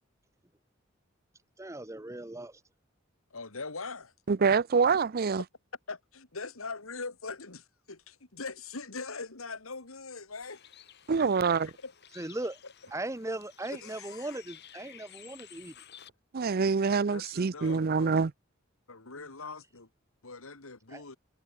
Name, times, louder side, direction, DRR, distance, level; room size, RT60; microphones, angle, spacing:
voice 1, 1.6-2.6 12.1-12.6 12.9-15.8 20.9-21.0, right 2 dB, 15° right, 1.0 m, -38 dB
voice 2, 3.3-4.1 5.9-10.6 11.5-11.6 11.8-11.9 13.7-14.3 16.8-18.1 18.9-19.9 20.2-21.2, left 4 dB, 80° left, 2.4 m, -42 dB
voice 3, 4.3-5.4 11.1-11.7 16.3-18.3, right 5 dB, 45° right, 0.5 m, -25 dB
Bird, 10.4-16.1, left 10 dB, 55° left, 4.6 m, -54 dB
head